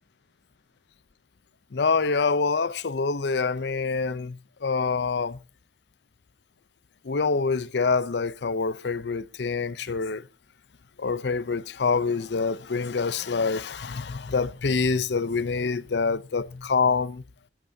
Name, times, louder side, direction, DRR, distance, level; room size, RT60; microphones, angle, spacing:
voice 1, 1.7-5.4 7.0-10.3 11.0-17.2, left 4 dB, 75° left, 0.6 m, -26 dB
19.0 x 12.0 x 2.7 m
head